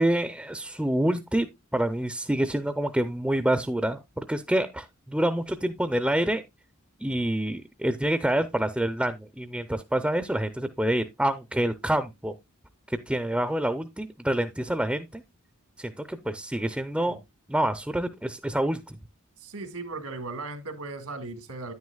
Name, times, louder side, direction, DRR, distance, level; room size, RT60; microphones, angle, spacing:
voice 1, 0.0-6.4 7.0-12.3 12.9-15.2 15.8-17.2 17.5-19.0, right 1 dB, 5° right, 0.5 m, -27 dB
voice 2, 19.4-21.7, right 3 dB, 80° right, 1.8 m, -37 dB
9.7 x 9.5 x 2.3 m
head